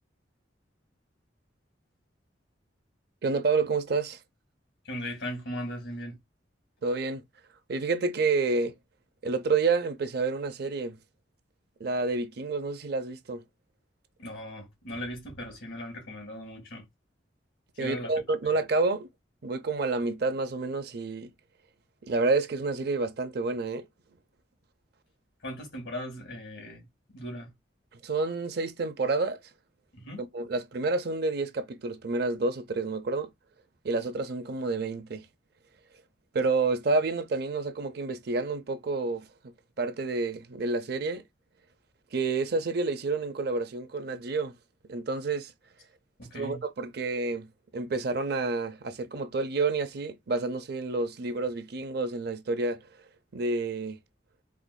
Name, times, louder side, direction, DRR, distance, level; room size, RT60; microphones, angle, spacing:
voice 1, 3.2-4.2 6.8-7.2 7.7-8.8 9.2-11.0 11.8-13.4 17.8-19.1 19.4-21.3 22.0-23.9 27.9-29.4 30.2-33.3 33.8-35.3 36.3-41.2 42.1-44.6 44.8-45.5 46.3-54.0, right 3 dB, 60° right, 0.6 m, -29 dB
voice 2, 4.8-6.2 14.2-16.8 17.7-18.5 25.4-27.5 29.9-30.2 46.2-46.6, equal, 75° left, 2.4 m, -38 dB
4.5 x 2.6 x 2.2 m
head